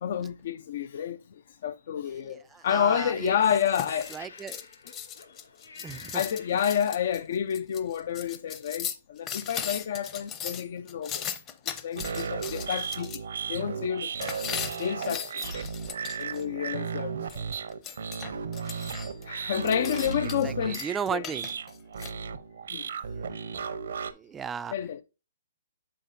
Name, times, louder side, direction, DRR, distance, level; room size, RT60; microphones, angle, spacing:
voice 1, 0.0-1.2 1.6-4.1 6.1-11.2 11.7-13.1 13.5-14.3 14.8-15.4 16.2-17.4 19.3-21.2 22.7-22.8 23.7-23.8 24.7-25.0, left 9 dB, 55° left, 0.4 m, -29 dB
voice 2, 2.2-3.3 4.1-4.6 5.8-6.2 20.4-21.5 23.1-23.3 24.0-24.7, right 7 dB, 15° right, 0.3 m, -35 dB
Laughter, 3.0-7.2 8.0-8.2, left 4 dB, 80° left, 1.7 m, -47 dB
sound 1, 3.3-13.2 14.2-16.4 17.3-19.2 19.6-20.5 20.7-22.1, left 8 dB, 25° left, 0.7 m, -38 dB
sound 2, 12.0-24.1, right 6 dB, 70° right, 0.8 m, -35 dB
7.2 x 5.8 x 2.6 m
hypercardioid pair, 135°, 0 cm